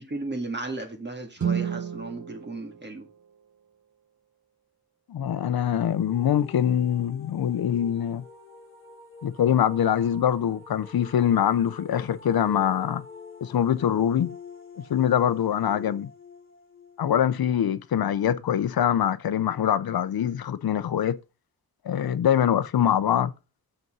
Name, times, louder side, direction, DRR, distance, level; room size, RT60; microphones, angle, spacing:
voice 1, 0.0-3.1, right 2 dB, 30° right, 1.8 m, -35 dB
Guitar, 1.4-4.0, right 8 dB, 55° right, 1.3 m, -32 dB
voice 2, 5.1-8.2 9.2-13.0 13.4-14.4 14.9-16.1 17.0-21.2 21.8-23.3, left 9 dB, 90° left, 0.6 m, -24 dB
sound 1, 5.2-18.1, left 5 dB, 35° left, 1.6 m, -46 dB
7.1 x 5.4 x 5.4 m
wide cardioid pair, 150°, 36 cm